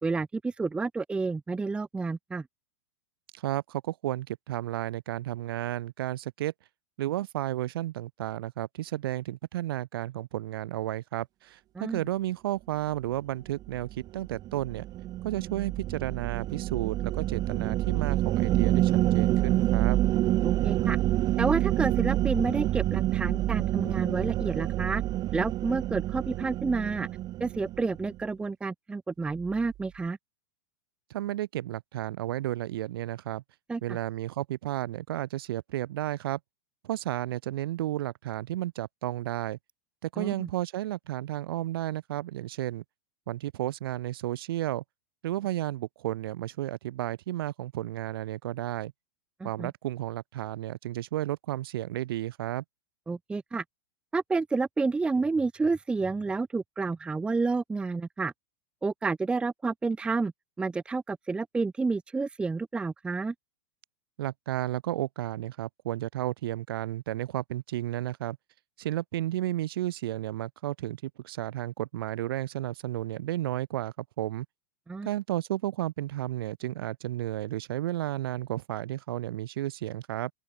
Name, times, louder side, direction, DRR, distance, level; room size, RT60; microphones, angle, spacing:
voice 1, 0.0-2.4 11.7-12.0 20.4-21.0 21.4-25.0 25.3-27.1 27.4-30.2 33.7-34.0 40.2-40.5 49.4-49.7 53.1-53.6 54.1-58.3 58.8-60.3 60.6-63.3 74.9-75.1, right 4 dB, 10° right, 0.7 m, -30 dB
voice 2, 3.3-6.5 7.0-14.8 15.2-20.0 31.1-33.4 33.8-36.4 36.8-39.6 40.0-42.8 43.3-44.8 45.2-48.9 49.4-52.6 64.2-68.4 68.8-74.5 75.0-80.3, right 14 dB, 70° right, 5.7 m, -32 dB
sound 1, 13.7-28.2, right 15 dB, 30° right, 1.4 m, -27 dB
open air
supercardioid pair, 140°, 13 cm